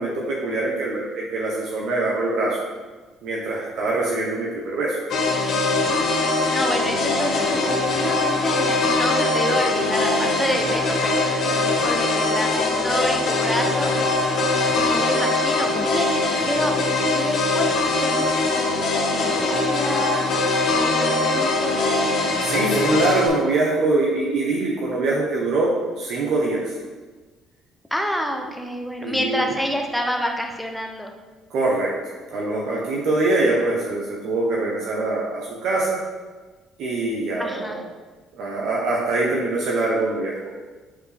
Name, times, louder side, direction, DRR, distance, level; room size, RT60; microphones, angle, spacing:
voice 1, 0.0-2.6 3.2-5.0 14.7-15.1 22.4-25.7 26.0-26.7 29.0-29.4 31.5-31.9 32.3-36.0 36.8-37.8 38.4-40.4, right 2 dB, 65° right, -3 dB, 1.1 m, -23 dB
sound 1, 5.1-23.3, left 2 dB, 60° left, 1.4 m, -22 dB
voice 2, 5.9-13.9 14.8-16.8 17.1-21.8 27.9-31.1 37.4-37.8, equal, ahead, 2 dB, 0.8 m, -28 dB
7.5 x 4.5 x 3.5 m, 1.3 s
cardioid pair, 140°, 0 cm